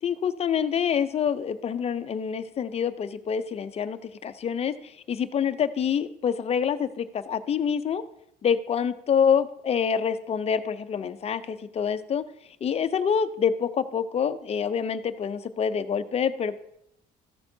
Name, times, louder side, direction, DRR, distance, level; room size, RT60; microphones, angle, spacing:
voice 1, 0.0-8.0 8.4-12.3 12.6-16.6, left 7 dB, 35° left, 12 dB, 0.5 m, -26 dB
14.0 x 7.0 x 2.7 m, 0.79 s
cardioid pair, 110°, 17 cm